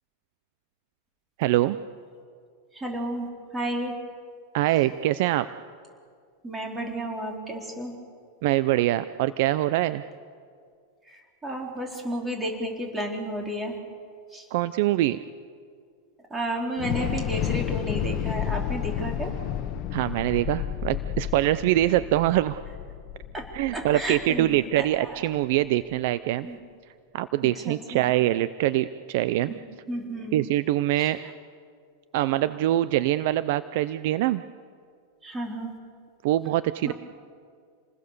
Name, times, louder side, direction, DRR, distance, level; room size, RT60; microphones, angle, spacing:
voice 1, 1.4-1.8 4.5-5.5 8.4-10.0 14.5-15.2 19.9-22.6 23.5-26.5 27.1-29.5 30.3-31.2 32.1-34.4 36.2-36.9, right 14 dB, 55° right, 14 dB, 0.6 m, -24 dB
voice 2, 2.7-3.3 3.5-3.9 6.4-7.9 11.1-13.8 14.3-14.4 16.3-19.3 23.3-23.4 23.7-25.2 26.4-26.6 27.6-27.8 29.5-29.6 29.9-30.5 31.0-31.1 35.2-35.7 36.8-36.9, right 1 dB, 10° right, 0 dB, 4.5 m, -32 dB
Thunder / Explosion, 16.8-25.0, left 11 dB, 40° left, 1.3 m, -31 dB
28.5 x 20.5 x 6.9 m, 2.1 s
supercardioid pair, 150°, 0 cm